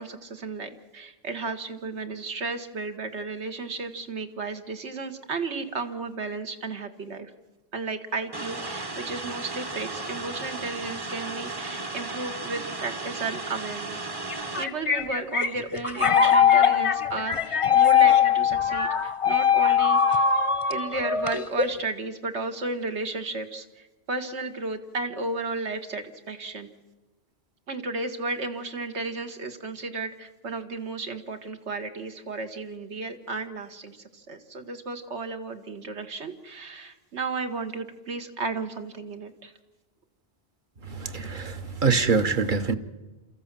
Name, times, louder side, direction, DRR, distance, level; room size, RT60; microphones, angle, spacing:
voice 1, 0.0-7.3 7.7-14.1 14.6-20.3 20.7-23.6 24.1-26.7 27.7-39.5, right 3 dB, 75° right, 7 dB, 1.7 m, -33 dB
sound 1, 8.3-14.6, right 3 dB, 25° right, 0.8 m, -35 dB
sound 2, 14.3-21.8, left 7 dB, 35° left, 0.7 m, -21 dB
voice 2, 40.9-42.8, right 4 dB, 45° right, 7 dB, 1.1 m, -24 dB
28.5 x 14.0 x 7.4 m, 1.1 s
omnidirectional pair, 1.2 m